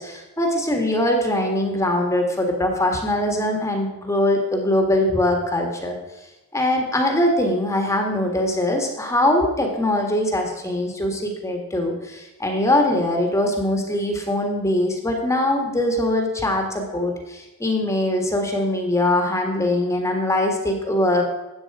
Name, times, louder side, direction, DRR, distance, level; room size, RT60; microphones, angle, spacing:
voice 1, 0.0-6.0 6.5-21.2, left 1 dB, 15° left, 3 dB, 1.7 m, -22 dB
13.5 x 8.8 x 4.8 m, 1.1 s
head